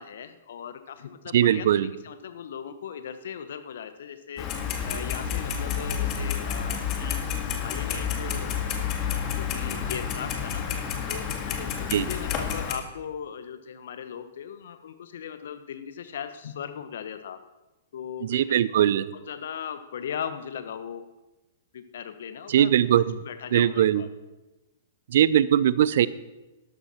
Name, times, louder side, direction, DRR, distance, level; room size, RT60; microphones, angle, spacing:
voice 1, 0.0-4.5 4.8-7.2 7.6-8.9 9.3-10.6 11.0-17.4 17.9-18.6 19.1-21.0 21.7-24.1, left 8 dB, 65° left, 10 dB, 1.1 m, -38 dB
voice 2, 1.3-1.9 11.9-12.1 18.2-19.1 22.5-23.0 23.5-24.0 25.1-26.1, right 10 dB, 60° right, 18 dB, 0.5 m, -20 dB
Clock, 4.4-12.7, left 7 dB, 35° left, 1.8 m, -30 dB
12.5 x 12.0 x 4.3 m, 1.0 s
figure-of-eight pair, 115°, 0 cm